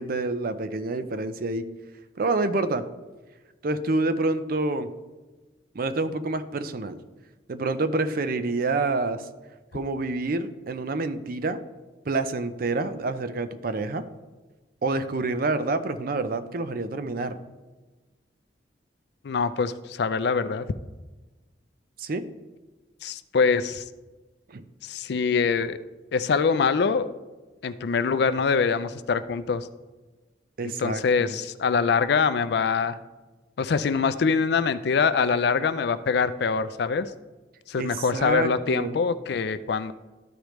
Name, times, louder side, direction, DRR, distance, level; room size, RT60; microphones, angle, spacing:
voice 1, 0.0-1.7 2.2-2.8 3.6-4.9 5.7-7.0 7.5-9.2 9.7-11.6 12.1-14.0 14.8-17.4 22.0-22.2 24.5-24.6 30.6-31.4 37.8-39.0, right 3 dB, 55° right, 11 dB, 0.5 m, -27 dB
voice 2, 19.2-20.7 23.0-23.8 24.8-25.8 26.1-27.1 27.6-29.7 30.8-33.0 33.6-37.1 37.7-39.9, left 5 dB, 65° left, 13 dB, 0.4 m, -24 dB
13.0 x 5.0 x 3.1 m, 1.2 s
head